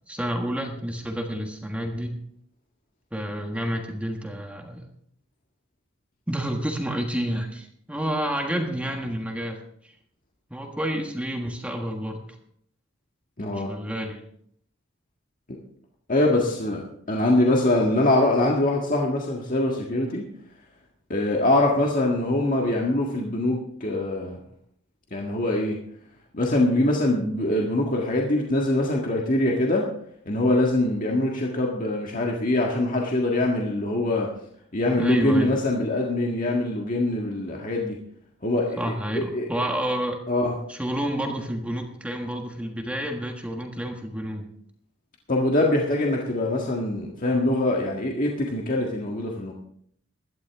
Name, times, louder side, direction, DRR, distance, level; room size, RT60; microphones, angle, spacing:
voice 1, 0.1-2.2 3.1-4.9 6.3-9.6 10.5-12.3 13.5-14.2 35.0-35.6 38.8-40.2 40.7-44.5, equal, 5° right, 2 dB, 1.5 m, -29 dB
voice 2, 13.4-13.7 16.1-16.8 17.1-20.2 21.1-24.4 25.1-25.8 26.3-29.9 30.3-34.3 34.7-38.0 38.4-39.7 40.3-40.5 45.3-49.5, left 1 dB, 45° left, -1 dB, 1.7 m, -23 dB
17.0 x 12.0 x 3.5 m, 0.66 s
head